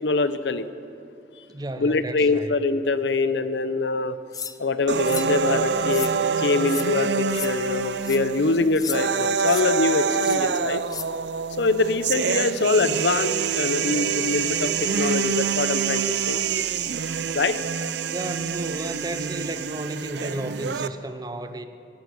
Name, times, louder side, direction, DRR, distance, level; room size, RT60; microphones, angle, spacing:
voice 1, 0.0-0.6 1.8-4.2 4.6-6.1 6.4-10.8 11.6-16.4 17.3-17.6, left 3 dB, 75° left, 12 dB, 0.7 m, -24 dB
voice 2, 1.5-2.5 18.1-21.6, right 1 dB, 20° right, 9 dB, 0.6 m, -33 dB
sound 1, 4.3-4.6 5.0-5.3 5.9-6.1 6.6-6.9 7.3-7.5 8.0-8.2 8.8-9.0 9.4-9.7 10.2-10.4 10.9-11.1, left 7 dB, 20° left, 0.5 m, -34 dB
sound 2, 4.9-20.9, right 6 dB, 70° right, 0.5 m, -26 dB
17.5 x 11.0 x 6.9 m, 2.5 s
head